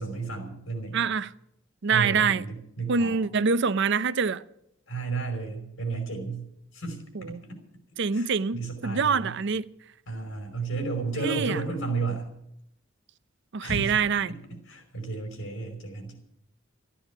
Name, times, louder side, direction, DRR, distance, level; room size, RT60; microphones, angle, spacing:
voice 1, 0.0-1.0 1.9-3.2 4.9-6.4 6.7-7.6 8.1-9.3 10.1-12.3 13.6-14.0 14.3-14.4 14.7-16.2, right 4 dB, 85° left, 5.3 m, -33 dB
voice 2, 0.9-1.3 1.8-2.4 2.9-4.4 7.1-7.4 8.0-9.7 11.2-11.6 13.5-14.3, right 5 dB, 60° right, 0.6 m, -25 dB
14.5 x 10.0 x 9.0 m
head